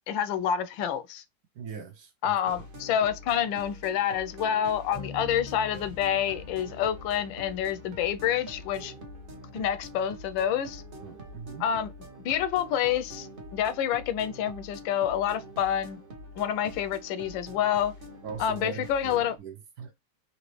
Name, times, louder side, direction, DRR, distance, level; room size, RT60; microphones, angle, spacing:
voice 1, 0.1-1.2 2.2-8.9 9.5-10.8 11.6-11.9 12.2-16.0 16.4-17.9 18.4-19.3, left 9 dB, 90° left, 1.3 m, -28 dB
voice 2, 1.5-2.7 11.0-11.7 18.2-19.9, right 6 dB, 65° right, 1.0 m, -41 dB
sound 1, 2.4-19.4, equal, 40° right, 0.8 m, -45 dB
Bass guitar, 4.9-14.6, left 4 dB, 15° right, 1.2 m, -49 dB
4.1 x 2.7 x 3.1 m
omnidirectional pair, 2.0 m